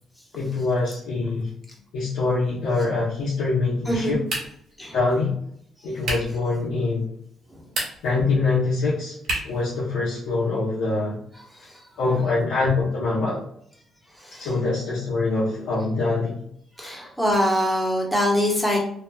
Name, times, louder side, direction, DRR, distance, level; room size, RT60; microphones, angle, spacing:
voice 1, 0.3-1.5 1.9-4.2 4.9-5.3 5.8-7.1 8.0-9.2 9.4-11.2 12.0-13.4 14.4-16.4, left 3 dB, 85° left, -8 dB, 0.7 m, -24 dB
voice 2, 3.9-4.2 4.8-5.0 11.7-11.8 14.2-14.5 16.8-18.8, equal, 5° left, -2 dB, 0.9 m, -23 dB
sound 1, 4.2-4.7 6.0-6.4 7.6-8.2 9.2-9.6, right 1 dB, 75° right, 1.2 m, -29 dB
3.0 x 2.2 x 2.2 m, 0.66 s
cardioid pair, 90°, 0 cm